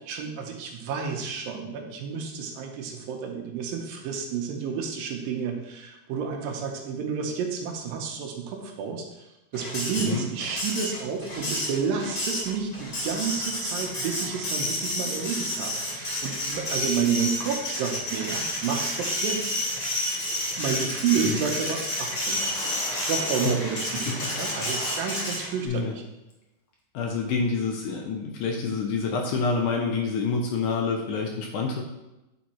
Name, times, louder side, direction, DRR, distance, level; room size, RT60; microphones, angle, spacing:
voice 1, 0.0-19.6 20.6-22.4 23.0-26.0, right 6 dB, 80° right, 3 dB, 2.5 m, -30 dB
Printer, 9.5-25.7, left 1 dB, 30° left, 2.1 m, -30 dB
Water / Splash splatter, 21.9-25.7 26.3-26.4 26.7-26.8, left 1 dB, 55° left, 1.6 m, -38 dB
voice 2, 24.1-24.6 25.7-25.9 26.9-31.8, left 4 dB, 75° left, 2 dB, 1.9 m, -28 dB
9.3 x 4.0 x 4.2 m, 0.97 s
omnidirectional pair, 4.1 m